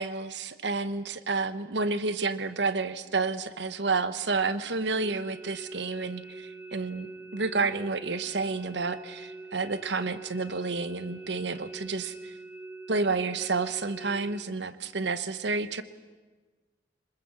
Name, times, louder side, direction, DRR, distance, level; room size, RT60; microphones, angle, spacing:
voice 1, 0.0-12.3 12.9-15.8, right 4 dB, 70° right, 13 dB, 1.1 m, -30 dB
sound 1, 5.0-14.4, right 2 dB, 10° right, 1.0 m, -44 dB
25.0 x 21.0 x 7.2 m, 1.3 s
head